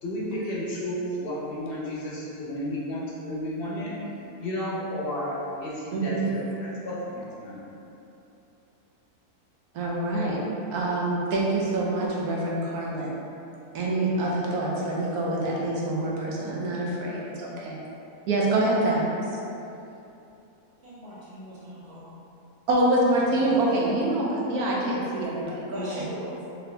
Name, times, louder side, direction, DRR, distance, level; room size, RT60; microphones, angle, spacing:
voice 1, 0.0-7.6, equal, 45° left, -7 dB, 0.8 m, -32 dB
voice 2, 5.9-6.3 9.7-10.4 10.7-13.2 13.7-17.8 18.3-19.0 22.7-25.8, right 2 dB, 75° right, -4 dB, 1.2 m, -26 dB
voice 3, 20.8-22.1 23.3-23.5 25.7-26.4, equal, 45° right, -11 dB, 1.5 m, -39 dB
4.3 x 2.7 x 3.2 m, 2.9 s
omnidirectional pair, 1.6 m